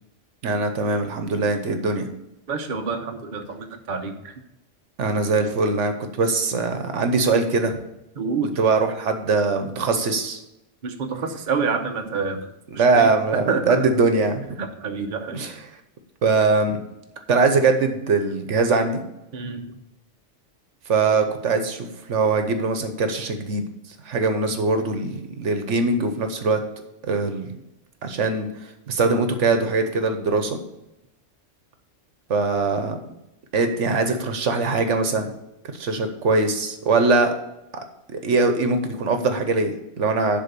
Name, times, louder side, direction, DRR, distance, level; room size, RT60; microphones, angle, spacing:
voice 1, 0.4-2.1 5.0-7.8 8.6-10.4 12.7-14.4 15.3-15.6 16.2-16.8 17.3-19.0 20.9-23.6 24.1-26.6 27.1-27.6 28.0-28.5 28.9-30.6 32.3-33.0 33.5-35.3 35.8-37.3 38.1-40.4, right 3 dB, 75° right, 7 dB, 1.3 m, -22 dB
voice 2, 2.5-4.1 8.2-8.6 10.8-12.4 12.9-13.1 13.5-13.8 14.6-15.5 19.3-19.6, right 5 dB, 45° right, 4 dB, 1.0 m, -27 dB
11.0 x 3.9 x 6.8 m, 0.89 s
omnidirectional pair, 1.3 m